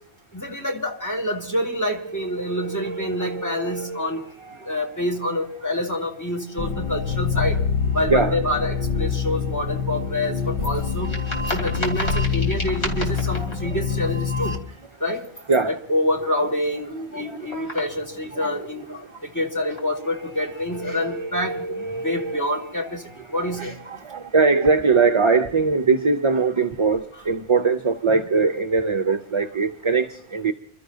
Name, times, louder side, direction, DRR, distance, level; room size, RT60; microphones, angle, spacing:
voice 1, 0.3-4.2 4.6-7.6 7.9-11.1 11.5-14.6 15.0-15.2 15.7-21.7 22.0-23.7, left 1 dB, 15° left, 2.1 m, -27 dB
voice 2, 2.0-4.7 8.1-8.4 13.3-13.8 15.5-15.8 17.2-17.4 18.4-18.5 20.2-22.7 23.3-30.5, right 4 dB, 35° right, 0.5 m, -23 dB
sound 1, 6.6-14.6, left 5 dB, 50° left, 1.4 m, -25 dB
sound 2, 10.5-13.6 15.2-15.6 17.2-18.0 18.4-18.5 19.6-20.1, left 1 dB, 85° left, 3.3 m, -34 dB
29.0 x 13.0 x 2.7 m
omnidirectional pair, 1.1 m